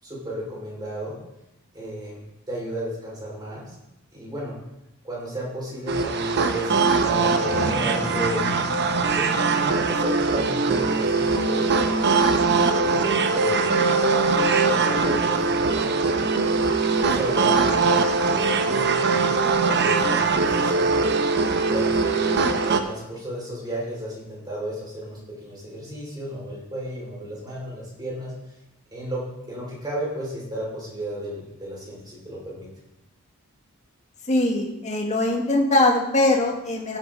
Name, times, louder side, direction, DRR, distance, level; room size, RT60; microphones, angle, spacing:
voice 1, 0.0-1.2 1.7-3.7 4.1-4.5 5.0-8.5 9.1-11.9 12.3-13.8 14.3-16.3 17.0-21.0 21.6-28.5 28.9-29.2 29.5-32.7, right 1 dB, 20° right, -4 dB, 5.2 m, -34 dB
sound 1, 5.9-22.8, right 4 dB, 50° right, 0.9 m, -21 dB
sound 2, 7.1-10.6, left 1 dB, 5° left, 5.6 m, -32 dB
voice 2, 34.3-37.0, left 2 dB, 30° left, 0 dB, 2.0 m, -21 dB
15.5 x 9.2 x 4.0 m, 0.91 s
head